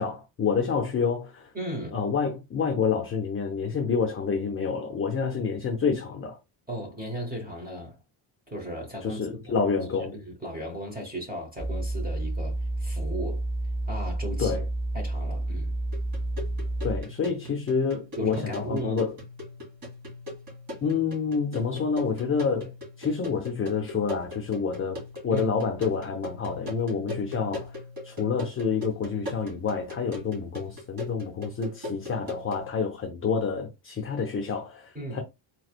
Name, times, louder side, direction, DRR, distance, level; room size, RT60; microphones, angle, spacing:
voice 1, 0.0-1.5 1.9-6.4 9.0-10.2 14.4-14.6 16.8-19.1 20.8-27.8 28.0-35.2, left 5 dB, 30° left, 0.6 m, -28 dB
voice 2, 1.5-2.0 6.7-8.0 8.5-9.5 10.1-13.4 13.9-14.6 14.9-15.8 18.2-19.0 25.3-25.5 34.9-35.2, right 1 dB, 20° right, 1.0 m, -36 dB
sound 1, 11.6-17.0, right 1 dB, 70° right, 1.8 m, -30 dB
sound 2, 15.9-32.7, left 2 dB, 45° right, 1.8 m, -40 dB
4.1 x 3.1 x 2.4 m
wide cardioid pair, 165°, 47 cm